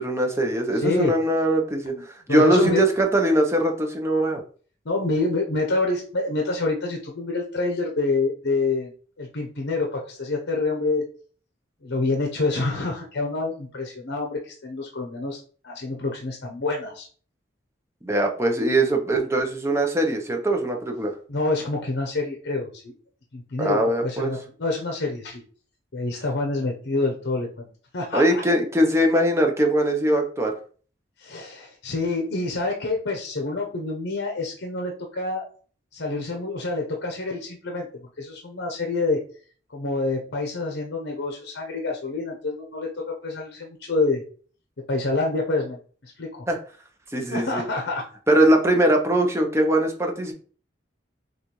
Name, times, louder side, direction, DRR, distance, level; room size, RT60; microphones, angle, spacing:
voice 1, 0.0-4.4 18.0-21.1 23.6-24.3 28.1-30.5 46.5-46.6 47.1-47.6 48.3-50.3, right 1 dB, 15° right, 2 dB, 0.6 m, -21 dB
voice 2, 0.7-1.2 1.9-2.8 4.8-8.9 9.2-11.0 11.8-17.1 21.3-22.9 23.3-25.4 25.9-27.7 27.9-28.2 31.2-35.5 35.9-37.9 38.2-39.2 39.7-42.9 43.2-44.2 44.9-46.5 47.3-48.0, left 3 dB, 75° left, 1 dB, 0.8 m, -27 dB
6.3 x 2.4 x 3.0 m, 0.43 s
head